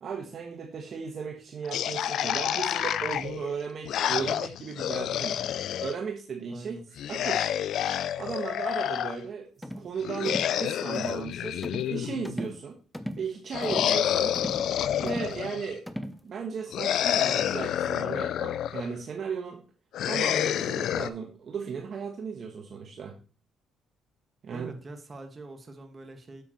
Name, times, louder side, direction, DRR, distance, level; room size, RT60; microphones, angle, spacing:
voice 1, 0.0-5.4 5.8-6.8 7.1-7.5 8.2-11.6 11.9-12.8 13.2-14.4 15.0-15.9 16.2-19.6 20.0-23.2 24.4-24.7, right 6 dB, 55° right, 3 dB, 1.3 m, -36 dB
sound 1, 1.7-6.0 7.0-9.2 10.0-12.4 13.5-15.7 16.7-18.9 19.9-21.1, left 10 dB, 70° left, 0.4 m, -29 dB
voice 2, 6.5-6.8 24.5-26.4, right 2 dB, 35° right, 5 dB, 1.8 m, -44 dB
sound 2, 9.6-9.9 10.3-10.6 10.9-11.2 11.6-12.0 12.2-12.6 12.9-13.3 13.6-14.0 14.3-14.7 15.1-15.4 15.9-16.2, equal, 5° left, 0.8 m, -37 dB
8.4 x 7.4 x 3.1 m, 0.36 s
cardioid pair, 80°, 0 cm